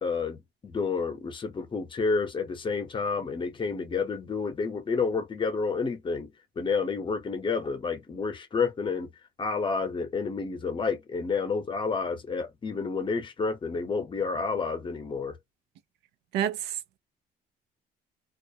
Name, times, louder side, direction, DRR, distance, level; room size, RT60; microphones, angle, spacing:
voice 1, 0.0-9.1 9.4-15.4, left 4 dB, 30° left, 0.7 m, -30 dB
voice 2, 16.3-17.0, right 10 dB, 85° right, 0.5 m, -29 dB
2.4 x 2.1 x 2.6 m
cardioid pair, 110°, 17 cm